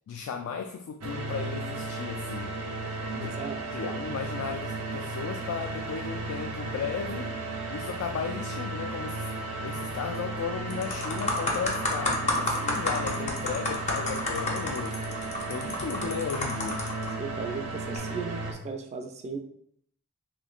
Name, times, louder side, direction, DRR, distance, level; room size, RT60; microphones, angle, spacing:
voice 1, 0.1-2.5 3.1-3.4 3.7-7.3 7.7-9.3 9.6-15.0 15.5-16.8, left 6 dB, 90° left, 4 dB, 0.3 m, -35 dB
sound 1, 1.0-18.5, right 2 dB, 85° right, 0.6 m, -35 dB
voice 2, 3.2-3.6 17.2-19.4, right 4 dB, 30° right, 4 dB, 0.3 m, -36 dB
sound 2, 10.1-10.3 10.7-17.1 17.8-18.0, left 2 dB, 30° left, 0.5 m, -30 dB
3.1 x 3.0 x 2.3 m, 0.70 s
head